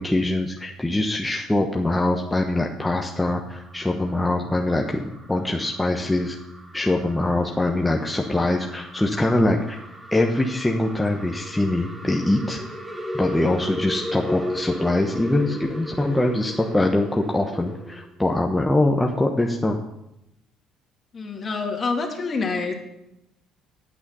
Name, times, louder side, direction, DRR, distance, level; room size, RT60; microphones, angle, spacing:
voice 1, 0.0-6.4 6.7-9.8 10.1-12.6 13.1-19.8, left 1 dB, 10° left, 0 dB, 1.1 m, -23 dB
sound 1, 3.0-18.1, equal, 15° right, 1.9 m, -36 dB
voice 2, 21.1-22.7, left 4 dB, 40° left, 2 dB, 2.2 m, -27 dB
8.6 x 8.5 x 5.6 m, 0.86 s
hypercardioid pair, 70°, 0 cm